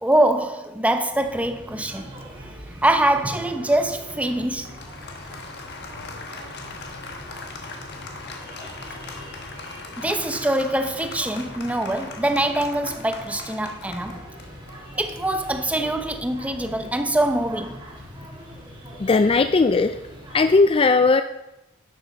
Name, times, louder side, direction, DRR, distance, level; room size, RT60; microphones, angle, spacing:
voice 1, 0.0-2.1 2.7-4.7 10.0-14.2 15.0-17.8, right 1 dB, 5° right, 0.7 m, -23 dB
sound 1, 1.1-20.6, equal, 25° right, 2.5 m, -42 dB
Applause, 2.9-17.3, left 3 dB, 55° left, 1.4 m, -41 dB
voice 2, 19.0-20.0 20.3-21.2, left 3 dB, 25° left, 0.3 m, -17 dB
11.0 x 6.9 x 6.4 m
head